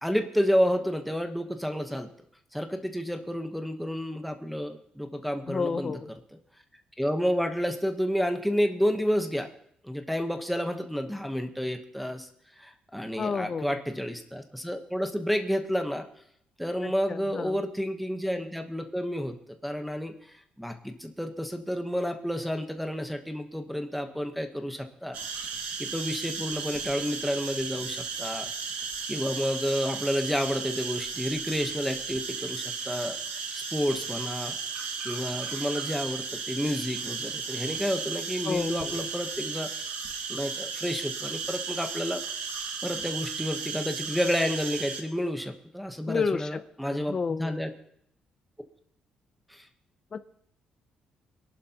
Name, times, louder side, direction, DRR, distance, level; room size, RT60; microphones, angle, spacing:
voice 1, 0.0-2.1 2.5-5.9 7.0-9.5 9.8-12.3 12.6-16.0 16.6-20.1 20.6-25.2 25.8-28.5 29.1-33.2 33.5-34.5 35.0-39.7 40.3-42.2 42.8-47.7 49.5-49.7, equal, ahead, 4 dB, 1.0 m, -30 dB
voice 2, 5.5-6.1 13.2-13.8 16.8-17.6 38.4-39.0 46.1-47.6 50.1-50.2, left 5 dB, 25° left, 11 dB, 0.5 m, -31 dB
sound 1, 25.1-45.0, right 5 dB, 85° right, 1.9 m, -35 dB
24.5 x 11.0 x 2.9 m, 0.70 s
cardioid pair, 175°, 2 cm